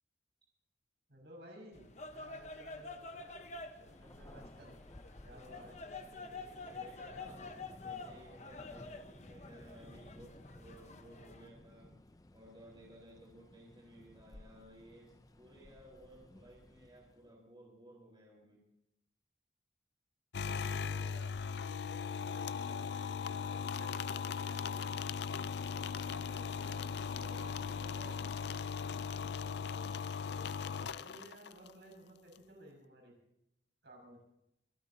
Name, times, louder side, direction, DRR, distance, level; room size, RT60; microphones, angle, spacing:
voice 1, 1.1-3.5 3.8-4.8 5.2-5.8 20.5-25.0 26.1-28.2 29.4-30.6 30.9-33.1 33.8-34.2, right 1 dB, 65° right, 1 dB, 6.3 m, -57 dB
sound 1, 1.7-11.5, left 3 dB, 40° left, 1.0 m, -48 dB
Thunder, 3.8-17.4, left 1 dB, 20° left, 0.5 m, -57 dB
voice 2, 6.4-7.4 7.8-11.9 12.3-18.6 34.1-34.2, right 1 dB, 25° right, -2 dB, 4.3 m, -57 dB
sound 2, 20.3-31.7, left 6 dB, 65° left, 0.5 m, -38 dB
25.5 x 14.0 x 2.8 m, 0.81 s
head